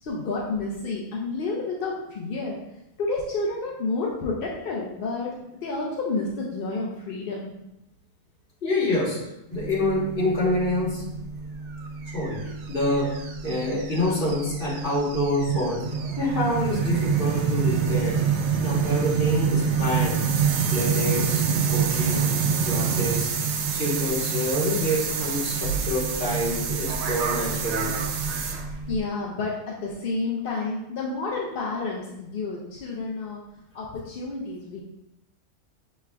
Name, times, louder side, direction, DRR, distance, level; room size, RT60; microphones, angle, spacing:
voice 1, 0.0-2.6 3.0-7.5 28.9-33.4 33.7-34.8, left 3 dB, 60° left, -3 dB, 0.6 m, -30 dB
voice 2, 8.6-9.2 9.5-11.0 12.1-15.9 16.2-18.2 18.6-20.2 20.7-21.4 21.7-22.3 22.6-28.0, left 1 dB, 40° left, -6 dB, 1.4 m, -27 dB
sound 1, 9.5-29.0, right 6 dB, 85° right, 1.0 m, -27 dB
5.9 x 3.3 x 2.2 m, 0.87 s
omnidirectional pair, 1.4 m